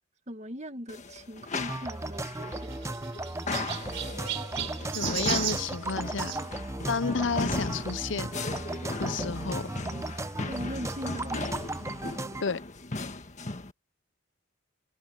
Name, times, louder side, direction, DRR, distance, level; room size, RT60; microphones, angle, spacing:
voice 1, 0.3-2.8 10.5-11.5, equal, 35° right, 1.8 m, -40 dB
sound 1, 0.9-13.7, left 2 dB, 35° left, 1.6 m, -37 dB
sound 2, 1.6-12.4, right 2 dB, 15° right, 0.7 m, -36 dB
Chirp tweet, 2.1-6.4 7.6-7.8 8.5-8.6 8.8-8.9 10.2-10.3, right 12 dB, 70° right, 4.7 m, -36 dB
voice 2, 4.9-6.4 6.9-8.3 9.0-9.7 12.4-12.6, left 5 dB, 70° left, 0.7 m, -31 dB
head